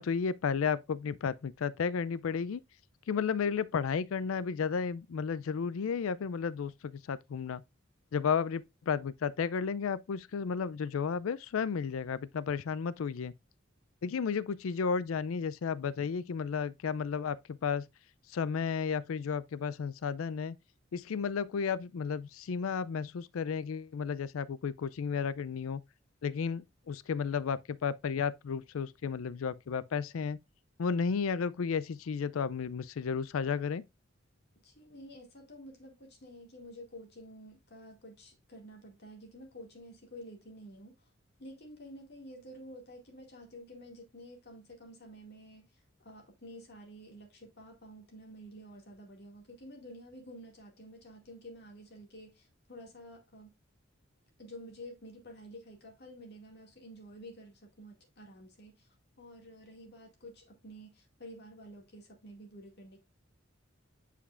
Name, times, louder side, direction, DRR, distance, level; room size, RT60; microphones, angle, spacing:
voice 1, 0.0-2.6 3.1-7.6 8.1-13.3 14.0-17.9 18.3-20.6 20.9-25.8 26.2-30.4 30.8-33.8, left 6 dB, 90° left, 0.4 m, -33 dB
voice 2, 34.6-41.1 41.4-53.5 54.4-63.0, equal, 55° left, 2.1 m, -50 dB
9.9 x 5.1 x 2.5 m
head